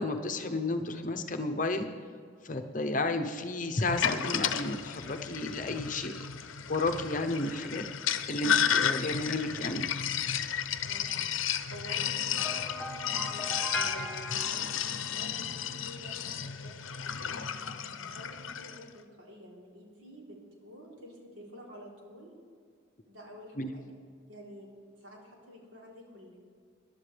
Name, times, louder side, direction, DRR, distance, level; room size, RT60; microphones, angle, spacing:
voice 1, 0.0-1.9 2.4-6.2 6.7-7.8 8.3-9.9 23.6-23.8, left 2 dB, 40° left, 7 dB, 0.8 m, -32 dB
Sink (filling or washing), 3.8-18.8, left 8 dB, 80° left, 0.7 m, -33 dB
voice 2, 11.6-13.4 13.7-14.7 15.1-17.5 18.1-22.3 23.1-23.9 24.3-26.4, equal, 75° right, -4 dB, 3.6 m, -49 dB
sound 1, 12.4-15.7, left 1 dB, 5° left, 1.1 m, -39 dB
21.5 x 11.0 x 3.4 m, 2.2 s
head